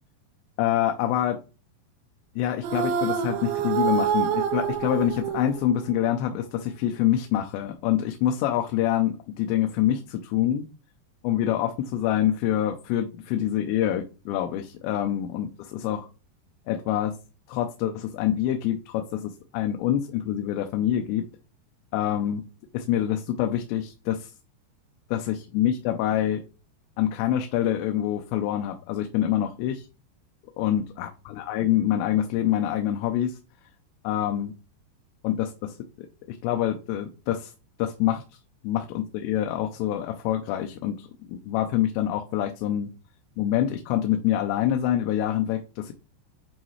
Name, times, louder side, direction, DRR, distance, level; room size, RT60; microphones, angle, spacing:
voice 1, 0.6-1.4 2.4-10.6 11.2-16.1 16.7-17.1 17.5-21.2 21.9-22.4 22.7-24.3 25.1-26.4 27.0-29.9 30.6-33.4 34.0-34.5 35.2-37.5 37.8-38.2 38.6-42.9 43.4-45.9, left 11 dB, 85° left, 5 dB, 2.9 m, -26 dB
sound 1, 2.6-6.0, right 8 dB, 85° right, 2.9 m, -27 dB
8.7 x 4.0 x 3.1 m, 0.32 s
omnidirectional pair, 5.1 m